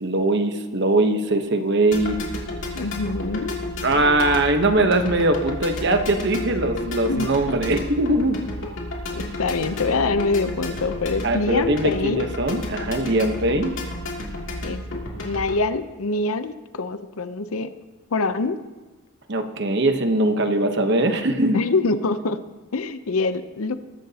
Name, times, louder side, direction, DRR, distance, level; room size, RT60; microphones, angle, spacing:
voice 1, 0.0-2.2 3.8-8.4 11.2-13.7 19.3-21.6, right 2 dB, 50° right, 6 dB, 1.0 m, -21 dB
sound 1, 1.9-15.6, left 1 dB, 60° left, 2.8 m, -32 dB
voice 2, 2.7-3.5 7.1-7.3 9.1-12.3 14.6-14.8 15.2-17.7 18.1-18.6 21.5-22.4 22.7-23.7, left 3 dB, 75° left, 11 dB, 0.7 m, -24 dB
21.5 x 11.0 x 2.9 m, 1.3 s
head